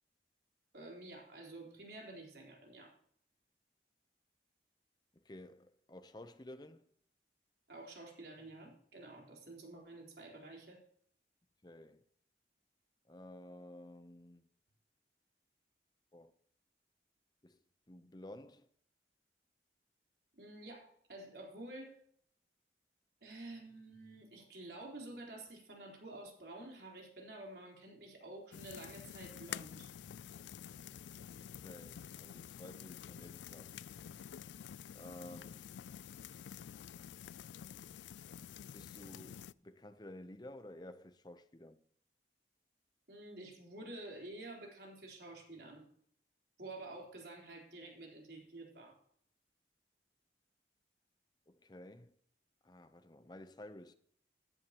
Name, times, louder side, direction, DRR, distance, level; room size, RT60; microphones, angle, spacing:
voice 1, 0.7-2.9 7.7-10.8 20.3-22.0 23.2-29.9 43.1-45.9 46.6-49.0, right 2 dB, 70° right, 3.9 m, -50 dB
voice 2, 5.1-6.8 11.6-12.0 13.1-14.5 16.1-16.3 17.4-17.6 17.9-18.7 31.4-33.8 34.9-35.7 38.7-41.8 51.5-52.2 52.6-53.9, left 1 dB, 25° left, 0.7 m, -53 dB
sound 1, 28.5-39.5, left 9 dB, 90° left, 0.3 m, -49 dB
14.5 x 11.0 x 3.0 m
head